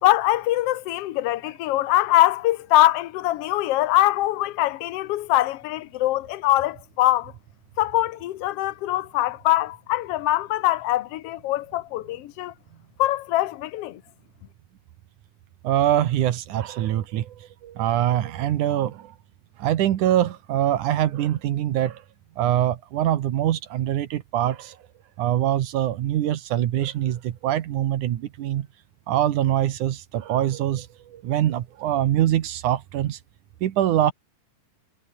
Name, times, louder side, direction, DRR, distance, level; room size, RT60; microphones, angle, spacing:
voice 1, 0.0-7.3 7.8-12.5 13.0-14.0, left 15 dB, 80° left, 1.4 m, -23 dB
voice 2, 15.6-17.3 17.6-19.1 19.6-22.0 22.4-24.8 25.2-28.7 29.1-33.2 33.6-34.1, right 12 dB, 70° right, 2.6 m, -23 dB
omnidirectional pair, 3.8 m